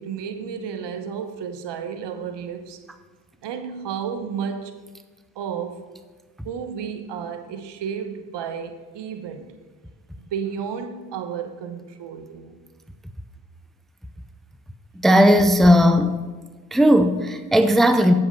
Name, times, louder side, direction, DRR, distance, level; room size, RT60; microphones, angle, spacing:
voice 1, 0.0-2.8 3.4-4.7 5.3-5.8 6.4-9.6 10.2-12.6, right 7 dB, 65° right, 8 dB, 1.1 m, -32 dB
voice 2, 15.0-16.2 16.7-18.1, equal, ahead, 9 dB, 0.6 m, -16 dB
7.7 x 7.6 x 5.4 m, 1.3 s
hypercardioid pair, 50°, 46 cm